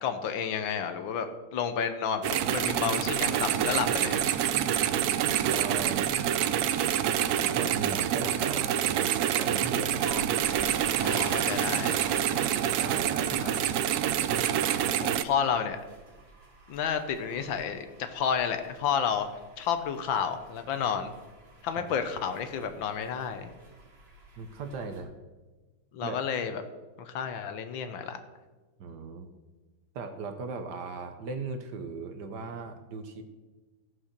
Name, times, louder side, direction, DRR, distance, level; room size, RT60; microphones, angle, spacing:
voice 1, 0.0-4.2 10.0-10.2 11.0-12.0 13.3-13.6 15.0-15.8 16.7-21.1 21.6-23.5 25.9-26.6 27.0-28.2, left 7 dB, 70° left, 9 dB, 1.5 m, -31 dB
sound 1, 2.2-15.2, right 10 dB, 85° right, 0.8 m, -27 dB
voice 2, 5.5-6.1 7.4-10.0 11.0-11.3 11.6-12.0 12.7-13.4 21.8-21.9 24.4-25.1 26.0-26.2 28.8-29.3 29.9-33.2, right 4 dB, 60° right, 7 dB, 1.3 m, -38 dB
sound 2, 10.1-25.0, right 2 dB, 30° right, 1.9 m, -48 dB
14.5 x 5.7 x 6.6 m, 1.3 s
omnidirectional pair, 2.3 m